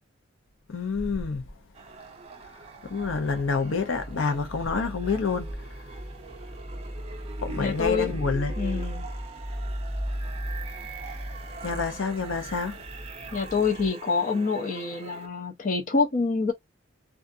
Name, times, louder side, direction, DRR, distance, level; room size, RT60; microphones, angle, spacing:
voice 1, 0.7-1.4 2.8-5.5 7.4-8.6 11.6-12.8, left 4 dB, 85° left, 0.7 m, -28 dB
sound 1, 1.7-15.3, right 4 dB, 30° right, 0.6 m, -43 dB
sound 2, 2.8-13.9, equal, 20° left, 0.9 m, -37 dB
voice 2, 7.6-8.1 8.6-9.1 13.3-16.5, left 4 dB, 40° left, 0.5 m, -26 dB
2.4 x 2.4 x 2.6 m
head